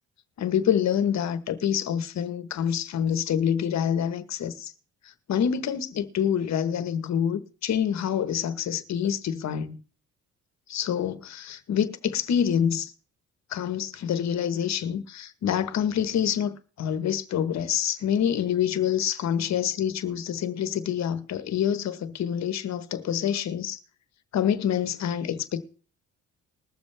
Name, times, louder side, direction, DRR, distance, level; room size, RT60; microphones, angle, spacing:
voice 1, 0.4-4.7 5.3-9.8 10.7-12.9 13.5-23.8 24.3-25.6, left 9 dB, 65° left, 1.2 m, -26 dB
21.0 x 7.1 x 3.3 m
cardioid pair, 90°, 30 cm